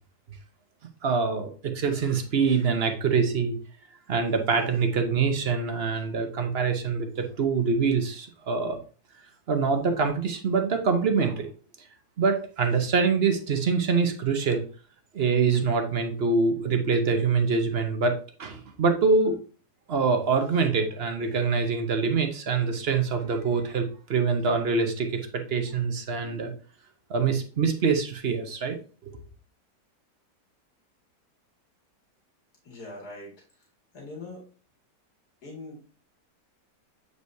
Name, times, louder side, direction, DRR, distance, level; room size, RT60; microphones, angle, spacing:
voice 1, 1.0-3.5 4.1-8.8 9.5-11.5 12.2-14.6 15.1-19.4 19.9-26.5 27.1-28.8 29.0-29.1, right 5 dB, 45° right, 5 dB, 0.8 m, -25 dB
voice 2, 32.6-33.3 33.9-34.4 35.4-35.8, left 2 dB, 60° left, -2 dB, 2.7 m, -41 dB
8.3 x 4.9 x 2.7 m, 0.38 s
omnidirectional pair, 1.9 m